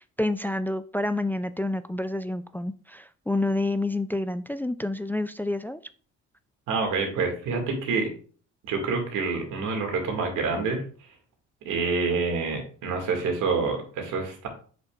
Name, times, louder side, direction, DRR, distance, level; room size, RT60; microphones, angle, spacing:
voice 1, 0.2-5.8, left 2 dB, 5° left, 12 dB, 0.3 m, -28 dB
voice 2, 6.7-8.1 8.6-10.8 11.6-14.5, right 4 dB, 90° right, 3 dB, 2.2 m, -27 dB
7.7 x 6.0 x 2.5 m, 0.41 s
cardioid pair, 90°, 30 cm